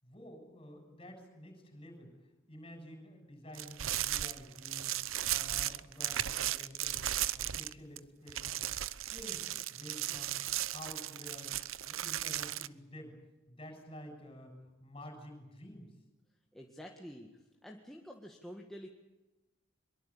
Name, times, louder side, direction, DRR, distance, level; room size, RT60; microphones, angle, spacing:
voice 1, 0.0-4.9 5.2-7.0 7.3-8.6 9.0-11.5 11.9-13.1 13.5-15.9, left 1 dB, 25° left, 5 dB, 7.1 m, -50 dB
sound 1, 3.5-8.0 8.3-12.7, right 13 dB, 80° right, 0.8 m, -36 dB
voice 2, 16.5-18.9, equal, ahead, 0 dB, 1.7 m, -49 dB
24.0 x 22.5 x 8.5 m, 1.1 s
head